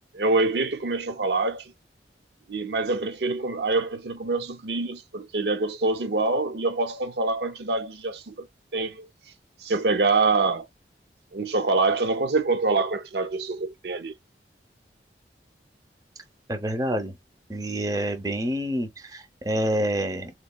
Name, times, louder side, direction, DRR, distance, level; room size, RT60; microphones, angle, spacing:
voice 1, 0.1-1.7 2.5-8.5 8.7-9.1 9.6-10.7 11.3-14.1, right 3 dB, 70° right, 0.6 m, -25 dB
voice 2, 16.5-17.2 17.5-20.3, right 1 dB, 20° right, 0.5 m, -27 dB
3.5 x 3.0 x 2.2 m
head